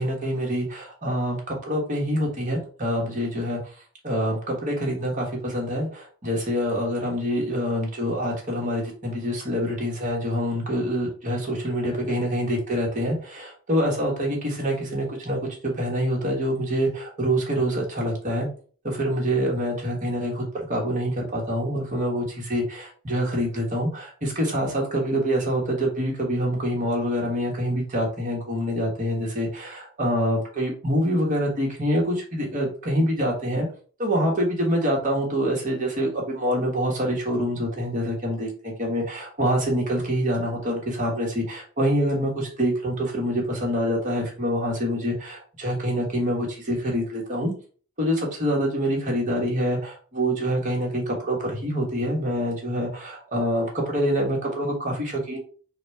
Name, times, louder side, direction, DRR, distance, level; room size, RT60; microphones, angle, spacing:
voice 1, 0.0-3.6 4.0-18.5 18.8-33.7 34.0-47.5 48.0-55.4, equal, 35° right, -1 dB, 1.3 m, -26 dB
4.1 x 2.3 x 4.4 m, 0.42 s
head